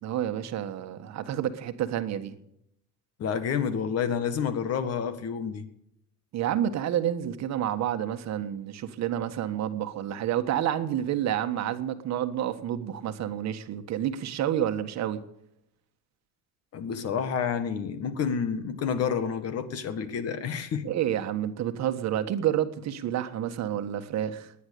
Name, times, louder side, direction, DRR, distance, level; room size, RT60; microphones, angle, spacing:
voice 1, 0.0-2.3 6.3-15.2 20.8-24.5, right 11 dB, 50° right, 9 dB, 1.6 m, -29 dB
voice 2, 3.2-5.6 16.7-20.8, left 7 dB, 45° left, 11 dB, 1.8 m, -29 dB
19.5 x 10.5 x 6.8 m, 0.77 s
cardioid pair, 160°, 34 cm